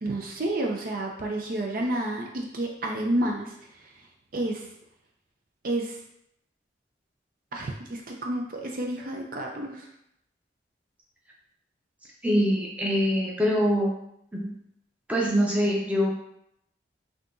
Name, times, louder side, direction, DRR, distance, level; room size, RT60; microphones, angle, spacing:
voice 1, 0.0-4.0 4.3-4.7 5.6-6.0 7.5-9.9, right 1 dB, 50° right, 1 dB, 0.5 m, -30 dB
voice 2, 12.2-13.9 14.3-14.5 15.1-16.1, equal, 10° right, -3 dB, 0.6 m, -24 dB
5.6 x 2.8 x 2.6 m, 0.76 s
head